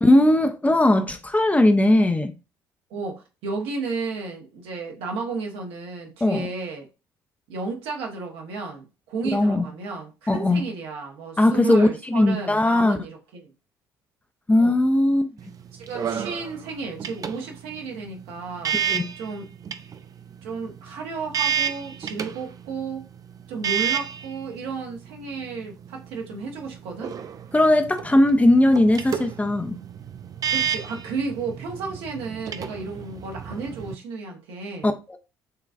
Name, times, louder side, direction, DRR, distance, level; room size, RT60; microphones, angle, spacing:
voice 1, 0.0-2.3 6.2-6.5 9.3-9.7 10.3-10.6 11.4-13.0 14.5-15.3 18.9-19.1 27.5-29.8 34.8-35.2, left 1 dB, 15° left, 0.6 m, -19 dB
voice 2, 2.9-6.9 7.5-13.5 14.6-14.8 15.7-19.5 20.4-23.1 23.5-27.2 30.5-34.9, right 4 dB, 65° right, 1.0 m, -33 dB
sound 1, 15.4-33.9, right 8 dB, 35° right, 0.4 m, -32 dB
5.9 x 2.4 x 2.4 m
hypercardioid pair, 50°, 10 cm